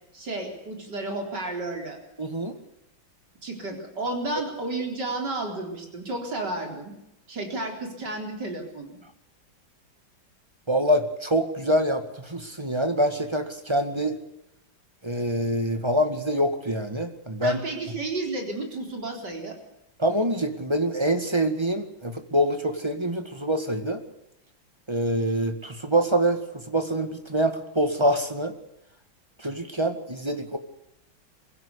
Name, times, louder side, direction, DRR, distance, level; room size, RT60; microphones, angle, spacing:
voice 1, 0.1-2.0 3.4-6.9 7.3-9.0 17.4-19.6, right 2 dB, 55° right, 2 dB, 4.6 m, -32 dB
voice 2, 2.2-2.6 10.7-14.2 15.0-17.6 20.0-24.0 24.9-28.5 29.4-30.6, equal, 15° right, 7 dB, 1.8 m, -25 dB
22.5 x 16.0 x 8.3 m, 0.83 s
omnidirectional pair, 2.1 m